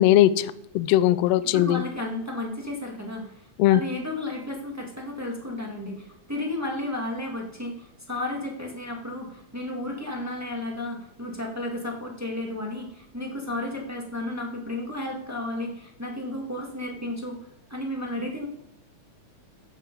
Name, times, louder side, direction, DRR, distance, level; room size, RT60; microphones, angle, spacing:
voice 1, 0.0-1.8 3.6-3.8, left 13 dB, 80° left, 15 dB, 1.5 m, -20 dB
voice 2, 1.5-17.4 17.7-18.5, left 1 dB, 10° right, 0 dB, 1.3 m, -33 dB
14.0 x 7.6 x 5.3 m, 0.78 s
omnidirectional pair, 3.3 m